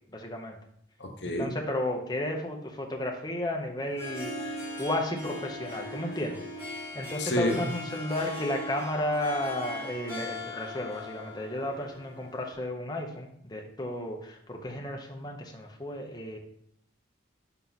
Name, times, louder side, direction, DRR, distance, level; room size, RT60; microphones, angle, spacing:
voice 1, 0.1-0.6 1.4-4.3 4.8-6.4 6.9-16.4, left 1 dB, 20° left, 1 dB, 0.8 m, -33 dB
voice 2, 1.0-1.6 7.2-7.7, left 1 dB, 60° left, 2 dB, 1.0 m, -29 dB
Harp, 3.8-12.5, left 1 dB, 10° right, 2.7 m, -39 dB
5.7 x 4.5 x 4.0 m, 0.71 s
head